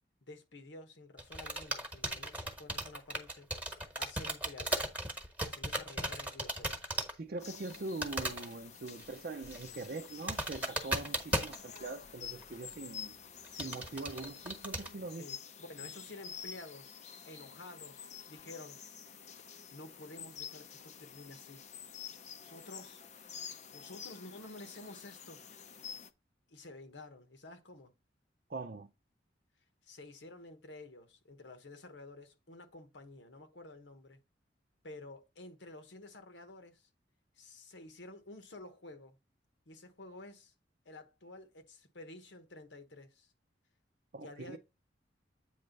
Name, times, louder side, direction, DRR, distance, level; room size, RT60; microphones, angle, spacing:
voice 1, 0.2-4.8 5.4-6.8 15.1-15.4 15.7-17.0 17.2-18.8 19.7-21.6 22.4-23.0 23.7-25.4 26.5-27.9 29.8-34.2 34.8-36.9 37.4-39.2 39.7-40.5 40.8-43.3 44.2-44.6, left 2 dB, 80° left, 1.2 m, -51 dB
sound 1, 1.2-7.1 7.4-7.8 8.0-8.5 8.9-9.1 9.4-12.0 12.4-12.5 13.4-14.9, right 1 dB, 10° right, 1.2 m, -36 dB
voice 2, 7.1-13.2 13.5-15.3 28.5-28.9 44.1-44.6, right 3 dB, 55° right, 0.6 m, -42 dB
sound 2, 7.4-26.1, left 7 dB, 40° left, 0.6 m, -49 dB
8.6 x 3.3 x 5.2 m
head